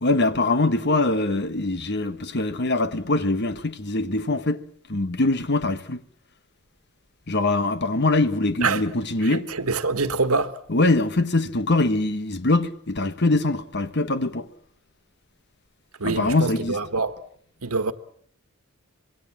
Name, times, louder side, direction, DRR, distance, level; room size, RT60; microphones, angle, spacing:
voice 1, 0.0-4.6 4.9-6.0 7.3-9.5 10.7-14.5 16.0-16.8, left 2 dB, 50° left, 1.3 m, -23 dB
voice 2, 9.2-10.5 16.0-17.2 17.6-17.9, right 4 dB, 90° right, 1.6 m, -25 dB
26.0 x 21.5 x 7.4 m
head